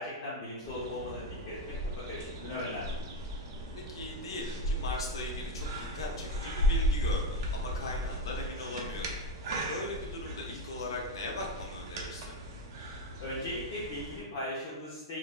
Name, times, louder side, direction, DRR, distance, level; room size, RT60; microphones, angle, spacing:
voice 1, 0.0-1.6 2.0-2.8 13.2-15.2, left 1 dB, 35° left, -8 dB, 0.7 m, -38 dB
sound 1, 0.6-14.2, equal, 50° right, 0.5 m, -35 dB
voice 2, 3.7-9.2 9.7-12.4, left 2 dB, 80° left, 0 dB, 0.6 m, -39 dB
3.1 x 2.6 x 2.2 m, 1.1 s
hypercardioid pair, 165°, 3 cm